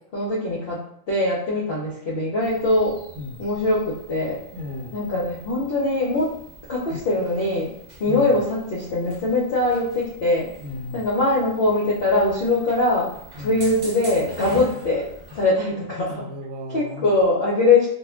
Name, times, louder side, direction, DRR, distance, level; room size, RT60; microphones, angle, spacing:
voice 1, 0.1-0.8 1.1-3.0 3.4-4.4 4.9-6.3 6.7-7.7 8.0-10.5 10.9-13.1 13.4-16.2 16.7-17.9, left 2 dB, 55° left, -5 dB, 0.7 m, -22 dB
sound 1, 2.4-15.5, equal, 50° right, 0.9 m, -43 dB
voice 2, 4.5-5.0 6.9-7.0 8.1-8.4 10.6-11.0 13.3-13.6 16.2-17.1, left 2 dB, 75° right, -1 dB, 1.1 m, -34 dB
2.4 x 2.1 x 3.6 m, 0.73 s
omnidirectional pair, 1.5 m